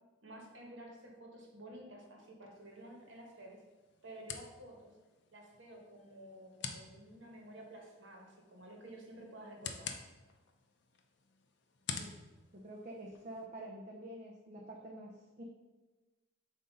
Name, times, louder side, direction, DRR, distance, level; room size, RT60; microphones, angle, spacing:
voice 1, 0.2-3.6 4.0-4.9 5.3-10.0, right 1 dB, 65° right, 0 dB, 1.3 m, -52 dB
sound 1, 2.5-13.5, left 6 dB, 55° left, 0.6 m, -49 dB
voice 2, 12.5-15.4, right 1 dB, 40° right, -1 dB, 0.7 m, -48 dB
7.4 x 2.8 x 5.3 m, 1.2 s
head